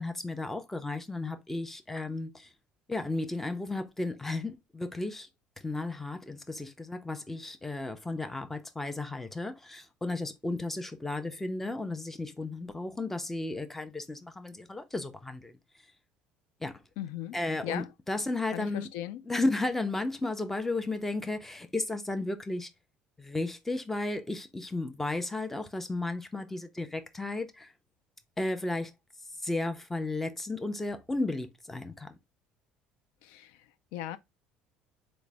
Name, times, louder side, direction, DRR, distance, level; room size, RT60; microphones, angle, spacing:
voice 1, 0.0-2.5 2.9-5.3 5.6-15.5 16.6-16.8 17.3-18.9 19.3-22.7 23.2-27.7 28.4-28.9 29.4-32.2, left 2 dB, 10° left, 0.5 m, -34 dB
voice 2, 17.0-17.9 18.5-19.2 33.2-34.2, left 12 dB, 85° left, 0.3 m, -38 dB
3.8 x 2.0 x 3.2 m
cardioid pair, 120°, 3 cm